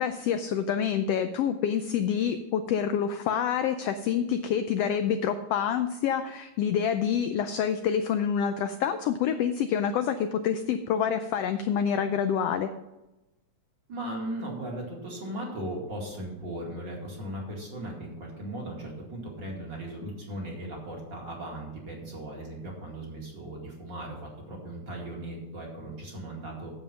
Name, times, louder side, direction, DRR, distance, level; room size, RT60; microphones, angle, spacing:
voice 1, 0.0-12.7, left 8 dB, 80° left, 9 dB, 1.4 m, -27 dB
voice 2, 13.9-26.7, right 1 dB, 40° right, -2 dB, 2.7 m, -37 dB
9.1 x 7.6 x 5.7 m, 0.97 s
omnidirectional pair, 3.3 m